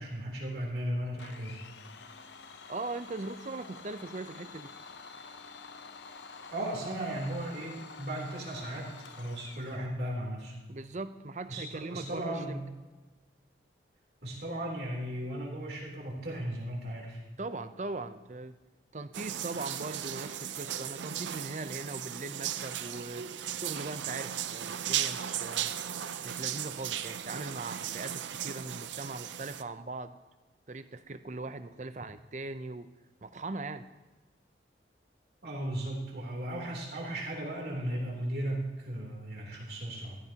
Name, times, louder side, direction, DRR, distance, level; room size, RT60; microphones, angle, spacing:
voice 1, 0.0-1.6 6.5-10.5 11.5-12.7 14.2-17.2 35.4-40.2, right 1 dB, 60° right, -2 dB, 3.2 m, -36 dB
Domestic sounds home sounds, 1.2-9.9, left 4 dB, 75° left, 0.7 m, -49 dB
voice 2, 2.7-4.7 10.7-12.6 17.4-18.5 18.9-23.2 23.6-25.7 26.2-30.2 30.7-32.9 33.2-33.8, right 3 dB, 40° right, 11 dB, 0.6 m, -40 dB
sound 1, 19.1-29.6, right 10 dB, 80° right, 0.6 m, -36 dB
16.0 x 14.0 x 2.9 m, 1.2 s
head